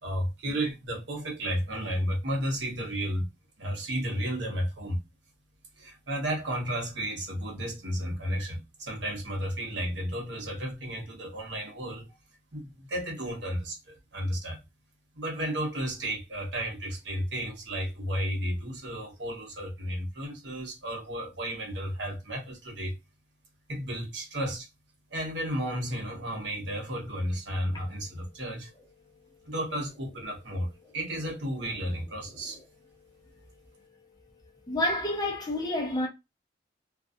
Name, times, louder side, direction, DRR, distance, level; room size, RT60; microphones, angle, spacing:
voice 1, 0.0-3.2 3.6-5.0 5.8-12.1 12.5-14.6 15.1-23.0 23.7-24.7 25.1-28.7 29.5-32.6, equal, 70° right, 0.9 m, -33 dB
voice 2, 34.7-36.1, left 1 dB, 20° left, 0.6 m, -28 dB
2.4 x 2.2 x 2.5 m
head